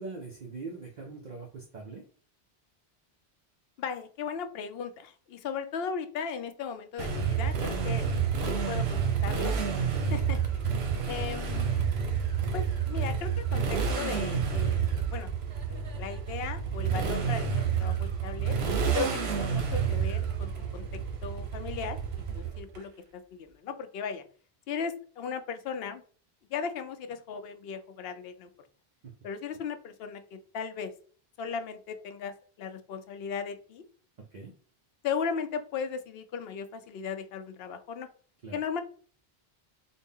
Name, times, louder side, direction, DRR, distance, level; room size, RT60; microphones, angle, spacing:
voice 1, 0.0-2.1 9.9-10.1 10.7-11.1 22.4-22.5 29.0-29.1 34.3-34.5 38.4-38.6, right 3 dB, 50° right, 0 dB, 0.7 m, -42 dB
voice 2, 3.8-8.1 8.4-9.7 10.1-10.4 11.1-11.7 12.5-15.3 15.7-18.6 18.9-22.0 22.3-24.2 24.7-26.0 26.5-28.5 29.2-30.9 31.4-33.8 35.0-38.1 38.5-38.8, left 6 dB, 75° left, 9 dB, 0.8 m, -37 dB
Motorcycle, 7.0-22.8, right 6 dB, 80° right, 1.0 m, -29 dB
4.0 x 2.1 x 3.5 m, 0.43 s
omnidirectional pair, 1.0 m